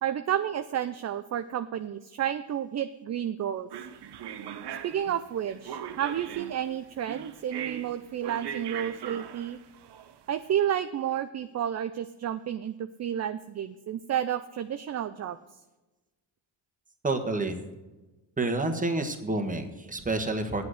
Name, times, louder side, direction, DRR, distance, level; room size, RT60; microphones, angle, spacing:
voice 1, 0.0-3.7 4.8-9.6 10.3-15.4, right 10 dB, 35° right, 11 dB, 0.4 m, -31 dB
sound 1, 3.7-10.4, right 8 dB, 60° right, 0.8 m, -40 dB
voice 2, 17.0-17.6 18.4-20.6, right 2 dB, 15° right, 5 dB, 1.3 m, -29 dB
8.3 x 7.8 x 6.5 m, 1.1 s
cardioid pair, 95°, 46 cm